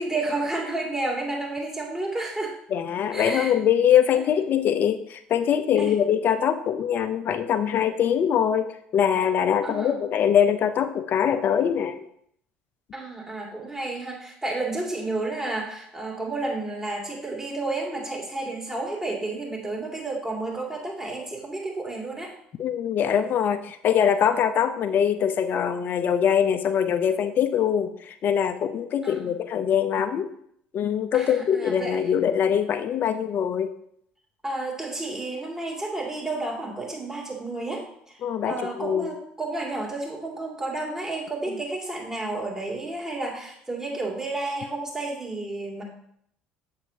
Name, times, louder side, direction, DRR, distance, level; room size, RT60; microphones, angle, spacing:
voice 1, 0.0-2.6 3.1-3.5 4.1-4.3 5.8-6.0 9.6-10.0 12.9-22.3 29.0-29.3 31.1-32.1 34.4-45.8, right 2 dB, 10° right, -2 dB, 2.5 m, -31 dB
voice 2, 2.7-12.0 22.6-30.3 30.7-33.7 38.2-39.1, left 8 dB, 50° left, 8 dB, 0.7 m, -23 dB
7.6 x 7.2 x 2.8 m, 0.70 s
hypercardioid pair, 70°, 4 cm